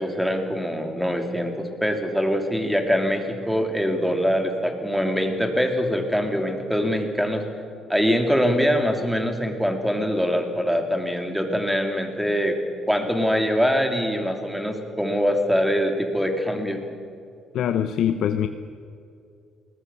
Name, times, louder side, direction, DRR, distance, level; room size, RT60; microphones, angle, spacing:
voice 1, 0.0-7.4 7.9-12.6 12.9-16.8, equal, ahead, 5 dB, 2.9 m, -23 dB
voice 2, 17.5-18.5, left 9 dB, 70° left, 9 dB, 0.8 m, -23 dB
21.0 x 19.5 x 7.0 m, 2.5 s
cardioid pair, 110°, 0 cm